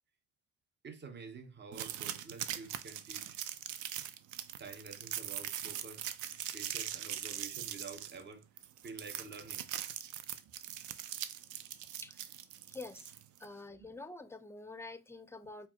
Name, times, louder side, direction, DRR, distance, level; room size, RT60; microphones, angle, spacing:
voice 1, 0.8-3.4 4.6-6.1 6.5-8.4 8.8-9.7 10.4-10.5, right 4 dB, 35° right, 0.9 m, -49 dB
sound 1, 1.7-13.5, right 11 dB, 75° right, 0.5 m, -41 dB
voice 2, 12.7-13.1 13.4-15.7, left 3 dB, 10° left, 0.5 m, -47 dB
4.6 x 2.2 x 3.6 m
supercardioid pair, 75°, 30 cm